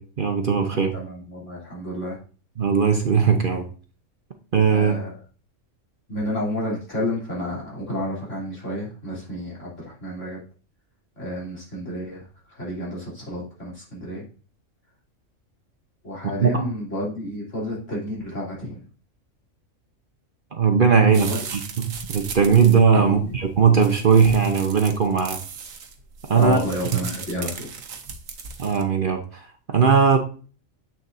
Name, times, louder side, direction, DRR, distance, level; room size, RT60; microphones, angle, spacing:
voice 1, 0.0-0.9 2.6-3.7 4.5-4.9 16.4-16.6 20.5-25.4 26.3-26.6 28.6-30.2, right 6 dB, 50° right, 5 dB, 0.8 m, -19 dB
voice 2, 0.9-2.2 4.7-5.2 6.1-10.4 11.2-14.2 16.0-18.8 21.1-21.4 22.9-23.3 26.3-27.8, left 1 dB, 65° left, -5 dB, 3.6 m, -31 dB
sound 1, 21.1-28.8, right 5 dB, 85° right, 1.4 m, -37 dB
7.5 x 6.8 x 2.6 m, 0.38 s
omnidirectional pair, 1.4 m